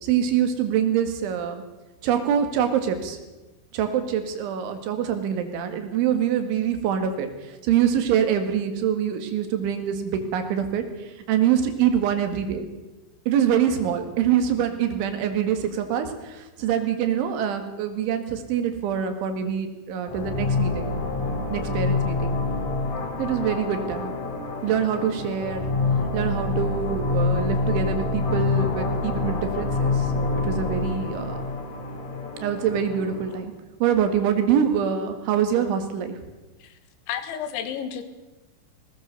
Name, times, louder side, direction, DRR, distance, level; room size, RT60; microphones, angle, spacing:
voice 1, 0.0-1.6 2.0-3.2 3.7-12.7 13.3-20.9 21.5-22.4 23.2-24.2 24.6-25.7 26.1-31.4 32.4-33.5 33.8-36.2, right 8 dB, 80° right, 7 dB, 4.3 m, -25 dB
sound 1, 20.1-33.4, left 3 dB, 45° left, 3.5 m, -26 dB
voice 2, 37.1-38.0, left 8 dB, 80° left, 10 dB, 3.9 m, -31 dB
20.5 x 18.5 x 6.9 m, 1.1 s
omnidirectional pair, 5.4 m